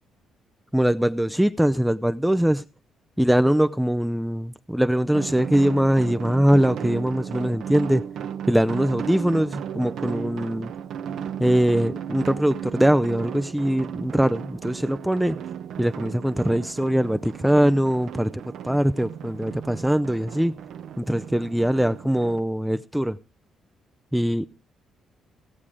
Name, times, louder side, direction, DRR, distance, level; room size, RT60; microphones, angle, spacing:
voice 1, 0.7-2.6 3.2-8.0 8.5-10.7 11.4-15.4 15.8-20.5 21.0-23.2 24.1-24.5, equal, 5° right, 0.5 m, -22 dB
sound 1, 5.1-22.4, right 8 dB, 75° right, 0.8 m, -35 dB
16.0 x 7.3 x 4.9 m
cardioid pair, 80°, 0 cm